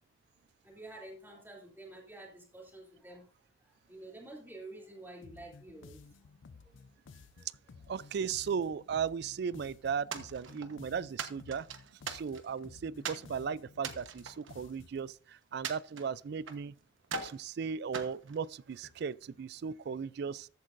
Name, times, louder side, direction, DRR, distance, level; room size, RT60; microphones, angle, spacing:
voice 1, 0.6-3.3 3.6-6.3 7.3-7.5, right 2 dB, 10° right, 2.8 m, -49 dB
sound 1, 5.2-15.1, left 4 dB, 75° left, 0.5 m, -55 dB
voice 2, 7.9-11.7 12.1-16.7 17.2-20.5, right 6 dB, 60° right, 0.3 m, -36 dB
sound 2, 10.1-10.8 11.2-12.6 13.0-13.3 13.8-15.1 15.6-16.7 17.0-17.4 17.9-19.0, right 5 dB, 80° right, 1.1 m, -41 dB
14.0 x 8.4 x 2.6 m
head